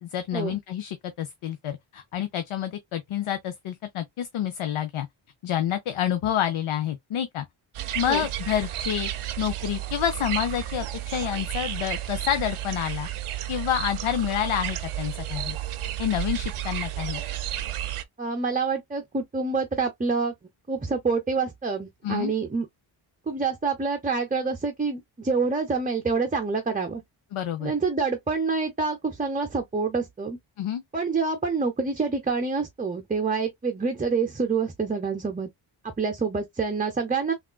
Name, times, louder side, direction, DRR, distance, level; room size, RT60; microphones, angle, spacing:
voice 1, 0.0-5.1 5.4-7.4 7.9-9.1 9.4-13.1 13.5-15.6 16.0-17.2 22.0-22.3 27.3-27.7 30.6-30.8, left 10 dB, 80° left, 0.6 m, -28 dB
sound 1, 7.7-18.0, right 13 dB, 85° right, 0.6 m, -32 dB
voice 2, 18.2-20.3 20.7-22.7 23.3-27.0 27.6-30.4 30.9-35.5 36.0-37.3, right 4 dB, 15° right, 0.5 m, -27 dB
3.6 x 2.4 x 2.2 m
cardioid pair, 80°, 49 cm